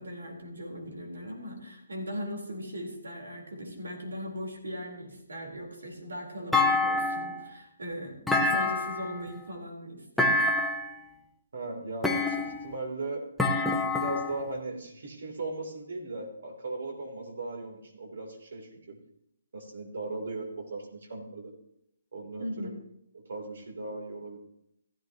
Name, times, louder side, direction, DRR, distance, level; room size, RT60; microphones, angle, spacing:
voice 1, 0.0-10.4 22.4-22.7, equal, 90° right, 1 dB, 4.0 m, -39 dB
Thump thud, 6.5-7.4 8.3-9.2 10.2-10.9 12.0-12.7 13.4-14.4, left 2 dB, ahead, 0.8 m, -26 dB
voice 2, 11.5-13.2 13.8-19.0 19.5-21.5 22.1-22.7 23.3-24.4, right 2 dB, 70° right, 2 dB, 3.4 m, -38 dB
15.5 x 13.5 x 3.0 m, 0.78 s
hypercardioid pair, 150°, 0 cm